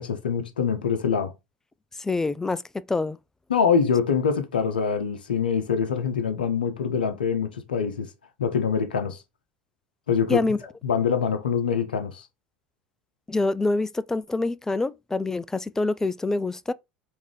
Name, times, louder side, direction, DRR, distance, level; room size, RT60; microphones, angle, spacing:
voice 1, 0.0-1.3 3.5-8.1 8.4-9.2 10.1-10.4 10.8-12.3, left 6 dB, 70° left, 0.6 m, -24 dB
voice 2, 2.0-3.2 10.3-10.6 13.3-16.7, left 3 dB, 10° left, 0.3 m, -26 dB
4.7 x 2.6 x 3.7 m
figure-of-eight pair, 70°, 5 cm